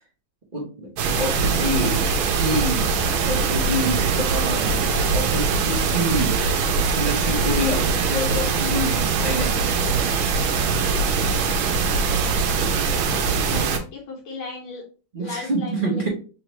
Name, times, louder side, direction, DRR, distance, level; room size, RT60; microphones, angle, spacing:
voice 1, 0.5-0.9 1.2-3.0 3.3-6.4 6.9-9.7 15.1-16.1, equal, 40° right, -3 dB, 0.7 m, -27 dB
sound 1, 1.0-13.8, right 5 dB, 85° right, 1.5 m, -22 dB
voice 2, 12.7-14.8 15.2-16.1, left 3 dB, 80° left, 0 dB, 1.6 m, -37 dB
3.6 x 3.3 x 3.0 m, 0.36 s
omnidirectional pair, 2.2 m